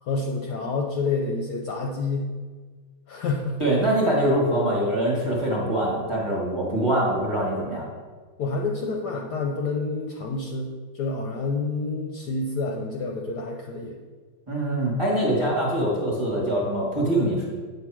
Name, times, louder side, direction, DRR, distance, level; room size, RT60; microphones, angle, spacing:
voice 1, 0.0-2.3 3.1-3.6 8.4-14.0, left 3 dB, 70° left, 0 dB, 1.0 m, -28 dB
voice 2, 3.6-7.9 14.5-17.5, right 1 dB, 20° right, -4 dB, 1.2 m, -24 dB
8.2 x 2.8 x 6.0 m, 1.5 s
omnidirectional pair, 2.2 m